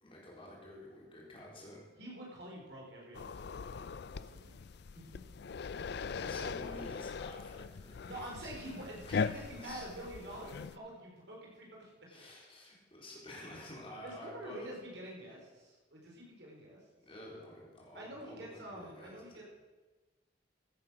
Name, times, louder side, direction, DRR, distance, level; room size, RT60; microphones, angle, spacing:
voice 1, 0.0-1.8 6.2-8.8 9.0-9.9 12.1-14.7 17.0-19.4, left 1 dB, 30° left, -3 dB, 4.1 m, -50 dB
voice 2, 2.0-4.6 4.9-5.2 8.0-12.4 14.0-16.8 17.9-19.4, right 1 dB, 65° right, -2 dB, 4.1 m, -47 dB
sound 1, 3.1-10.8, left 5 dB, 60° left, 0.4 m, -40 dB
15.0 x 9.8 x 6.3 m, 1.2 s
head